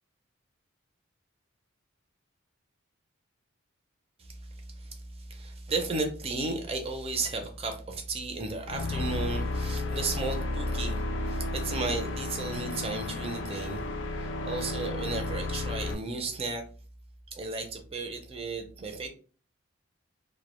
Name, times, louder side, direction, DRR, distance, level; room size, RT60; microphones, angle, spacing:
voice 1, 4.2-13.9 14.1-16.6 17.3-19.1, right 3 dB, 30° right, 4 dB, 0.4 m, -34 dB
sound 1, 8.7-15.9, left 2 dB, 60° left, 0.3 m, -32 dB
2.1 x 2.1 x 2.9 m, 0.39 s
head